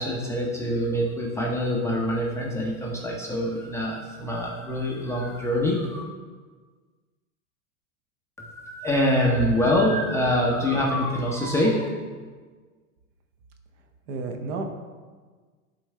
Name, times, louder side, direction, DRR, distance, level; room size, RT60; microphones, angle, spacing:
voice 1, 0.0-6.0 8.4-11.9, left 1 dB, 5° left, -3 dB, 0.6 m, -25 dB
voice 2, 10.5-10.9 14.1-14.6, right 3 dB, 50° right, 5 dB, 1.0 m, -33 dB
11.0 x 4.4 x 3.2 m, 1.5 s
hypercardioid pair, 125°, 44 cm